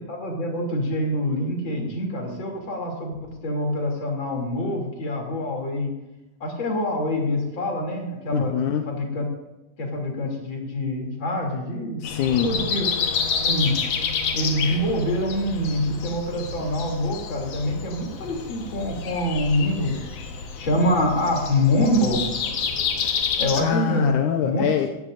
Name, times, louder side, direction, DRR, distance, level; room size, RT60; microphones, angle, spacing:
voice 1, 0.1-5.9 6.4-8.6 8.9-9.2 9.8-12.0 12.4-12.8 13.5-13.8 14.3-20.0 20.6-22.4 23.4-24.1 24.4-24.6, left 1 dB, 40° left, 0 dB, 3.5 m, -25 dB
voice 2, 8.3-8.8 12.0-12.5 23.6-24.9, left 8 dB, 80° left, 3 dB, 2.3 m, -23 dB
Breathing, 12.0-23.6, left 6 dB, 60° left, 2.2 m, -29 dB
19.0 x 15.0 x 2.6 m, 1.0 s
omnidirectional pair, 3.5 m